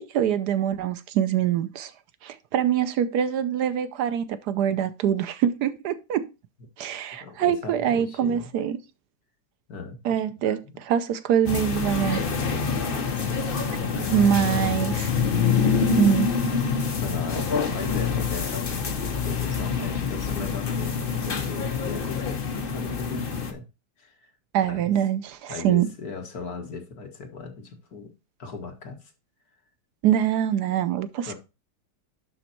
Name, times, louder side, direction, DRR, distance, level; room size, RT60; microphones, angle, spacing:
voice 1, 0.0-1.9 2.2-6.3 6.8-8.8 10.0-12.2 14.1-14.9 16.0-16.3 24.5-25.9 30.0-31.3, right 10 dB, 75° right, 1.2 m, -24 dB
voice 2, 7.2-8.5 9.7-10.2 10.7-10.8 13.8-14.9 15.6-16.0 16.5-23.7 24.0-24.3 24.6-24.9 25.5-28.1 28.4-29.0 31.3-31.4, left 4 dB, 60° left, 2.1 m, -38 dB
sound 1, 11.5-23.5, left 5 dB, 40° left, 1.0 m, -26 dB
11.5 x 4.0 x 4.4 m
omnidirectional pair, 1.8 m